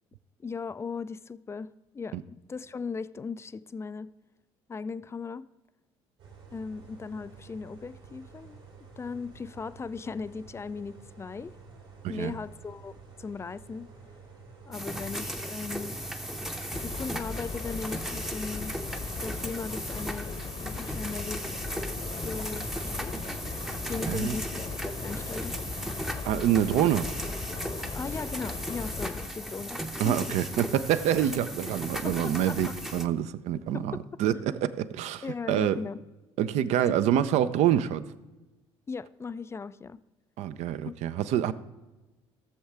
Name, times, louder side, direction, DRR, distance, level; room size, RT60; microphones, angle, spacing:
voice 1, 0.4-4.1 4.7-5.5 6.5-8.6 9.0-11.6 12.1-13.9 14.7-16.0 16.8-18.8 19.2-20.3 20.6-21.4 22.2-23.2 23.9-25.6 27.9-30.3 32.0-32.7 33.7-34.2 35.2-36.0 36.9-37.0 38.9-40.0 40.9-41.0 41.5-41.6, left 4 dB, 20° left, 0.3 m, -38 dB
sound 1, 6.2-17.6, right 4 dB, 75° right, 3.0 m, -51 dB
sound 2, 14.7-33.1, equal, ahead, 0.7 m, -36 dB
sound 3, 16.7-29.3, left 5 dB, 35° left, 0.9 m, -38 dB
voice 2, 26.3-27.1 30.0-35.8 36.4-38.0 40.4-41.5, right 10 dB, 50° right, 0.5 m, -26 dB
16.5 x 7.1 x 3.4 m
figure-of-eight pair, 55°, 14 cm